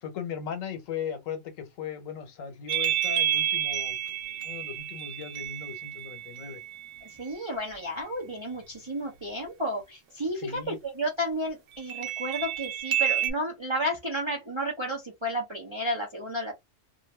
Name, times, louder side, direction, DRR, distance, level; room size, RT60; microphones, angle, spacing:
voice 1, 0.0-6.6 10.3-10.8, left 7 dB, 80° left, 1.1 m, -38 dB
sound 1, 2.7-7.3 11.9-13.3, right 11 dB, 75° right, 1.0 m, -30 dB
voice 2, 7.0-16.6, equal, 25° right, 0.7 m, -32 dB
2.5 x 2.4 x 3.2 m
omnidirectional pair, 1.3 m